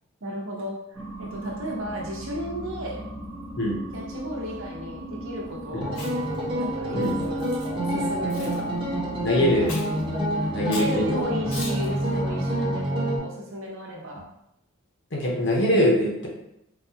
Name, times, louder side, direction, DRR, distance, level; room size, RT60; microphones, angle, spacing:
voice 1, 0.2-3.0 3.9-5.9 6.6-7.5 7.8-8.7 10.3-14.2, equal, 60° right, -2 dB, 0.8 m, -34 dB
sound 1, 0.9-12.8, equal, 15° left, 0.7 m, -37 dB
sound 2, 5.8-13.2, right 1 dB, 20° right, 0.7 m, -27 dB
Chewing mastication, 5.9-6.4 7.0-7.7 8.3-8.6 9.7-10.0 10.7-11.0 11.5-11.9, left 2 dB, 75° left, 1.1 m, -38 dB
voice 2, 9.2-9.8 10.5-11.2 15.1-16.3, equal, 55° left, -2 dB, 0.8 m, -23 dB
3.9 x 2.2 x 2.8 m, 0.83 s
head